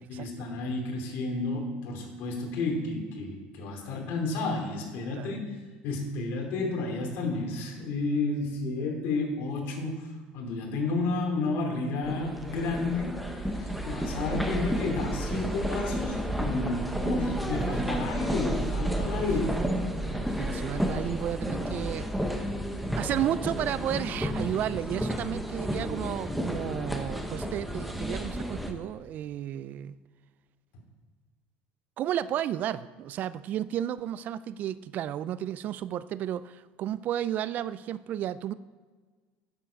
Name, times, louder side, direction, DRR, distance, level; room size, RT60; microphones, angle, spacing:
voice 1, 0.1-5.6 5.8-10.1 10.3-19.5 20.8-21.0, left 3 dB, 65° left, 1 dB, 2.7 m, -31 dB
sound 1, 12.0-28.7, equal, ahead, 0.9 m, -32 dB
voice 2, 17.4-18.1 19.1-19.3 20.1-22.1 22.9-30.0 32.0-38.5, right 11 dB, 45° right, 16 dB, 0.3 m, -33 dB
9.9 x 7.1 x 5.2 m, 1.4 s
cardioid pair, 135°, 4 cm